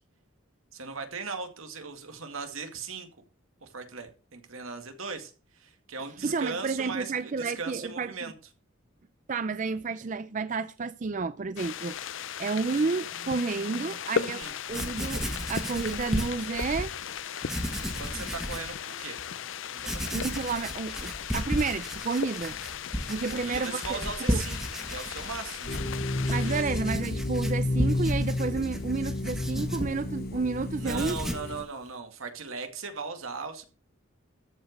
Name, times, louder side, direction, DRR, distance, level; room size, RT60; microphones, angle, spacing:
voice 1, 0.7-3.1 3.6-8.3 14.3-14.5 18.0-19.2 19.7-20.1 23.3-24.6 24.9-25.8 26.4-26.5 30.8-33.6, right 4 dB, 85° right, 2.1 m, -38 dB
voice 2, 6.2-8.3 9.3-12.0 12.4-16.9 20.1-22.6 23.1-24.4 26.3-31.2, right 4 dB, 35° right, 0.4 m, -31 dB
sound 1, 11.6-26.6, left 8 dB, 70° left, 0.5 m, -37 dB
Writing, 14.4-14.5 14.7-16.9 17.4-18.7 19.2-19.3 19.8-30.4 30.7-31.5, equal, ahead, 1.4 m, -34 dB
sound 2, 25.7-31.6, left 2 dB, 45° left, 0.9 m, -31 dB
13.5 x 5.0 x 6.5 m
head